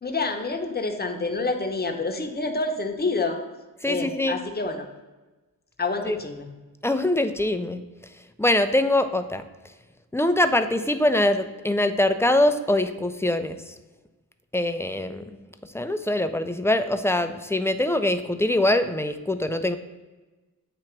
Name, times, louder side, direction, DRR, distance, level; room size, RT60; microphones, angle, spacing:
voice 1, 0.0-3.4 3.8-4.9 5.8-6.5, left 3 dB, 30° left, 3 dB, 0.8 m, -28 dB
voice 2, 3.8-4.4 6.0-6.2 6.8-7.8 8.4-9.4 10.1-13.6 14.5-15.2 15.7-19.8, left 1 dB, 10° left, 9 dB, 0.4 m, -23 dB
8.6 x 3.0 x 4.4 m, 1.1 s
wide cardioid pair, 80°, 35 cm